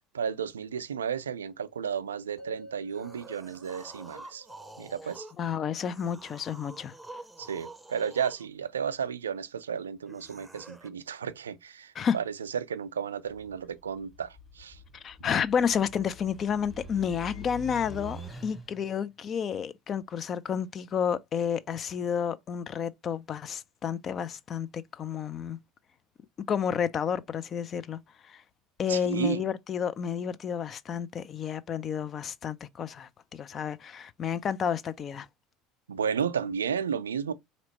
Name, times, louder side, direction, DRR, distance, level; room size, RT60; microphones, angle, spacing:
voice 1, 0.1-4.4 4.8-5.3 7.4-14.8 28.9-29.4 35.9-37.3, right 7 dB, 80° right, 0.4 m, -33 dB
sound 1, 2.4-6.5, equal, 85° left, 1.4 m, -53 dB
sound 2, 2.9-5.4 5.8-8.5 10.0-10.9, right 2 dB, 10° right, 0.7 m, -47 dB
voice 2, 5.4-6.9 12.0-12.2 14.9-25.6 26.5-28.0 28.3-28.4 28.8-35.3, left 7 dB, 40° left, 0.5 m, -31 dB
sound 3, 13.3-18.9, left 1 dB, 20° left, 1.4 m, -46 dB
4.1 x 2.9 x 2.9 m
figure-of-eight pair, 70°, 0 cm